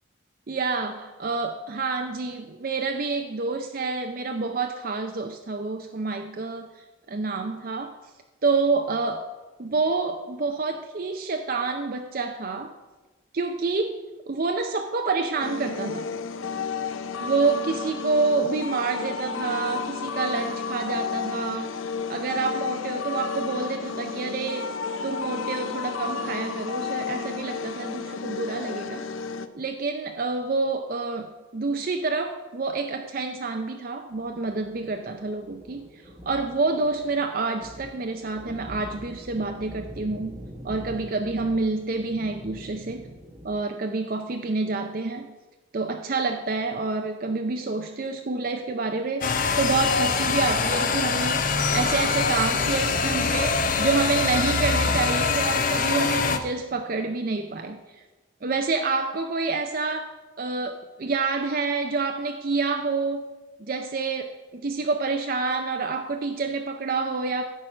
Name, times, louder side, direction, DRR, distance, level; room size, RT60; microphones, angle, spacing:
voice 1, 0.5-8.0 8.4-9.3 9.6-12.7 13.3-13.9 14.3-16.1 17.2-21.8 22.1-24.7 25.0-29.1 29.5-40.4 40.6-43.1 43.4-45.3 45.7-58.0 58.4-60.1 60.4-63.3 63.6-67.4, right 4 dB, 45° right, 5 dB, 0.5 m, -28 dB
sound 1, 15.4-29.5, left 5 dB, 80° left, 0.5 m, -32 dB
sound 2, 34.1-43.6, equal, 15° right, 1.0 m, -44 dB
sound 3, 49.2-56.4, left 4 dB, 40° left, 0.6 m, -24 dB
10.0 x 4.7 x 7.6 m, 1.2 s
head